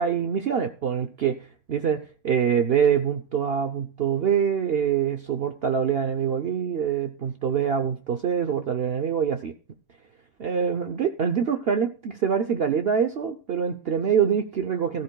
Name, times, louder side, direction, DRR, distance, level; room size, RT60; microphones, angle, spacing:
voice 1, 0.0-1.4 1.7-9.5 10.4-15.0, right 7 dB, 55° right, 7 dB, 0.8 m, -25 dB
14.0 x 13.0 x 2.2 m, 0.37 s
omnidirectional pair, 1.5 m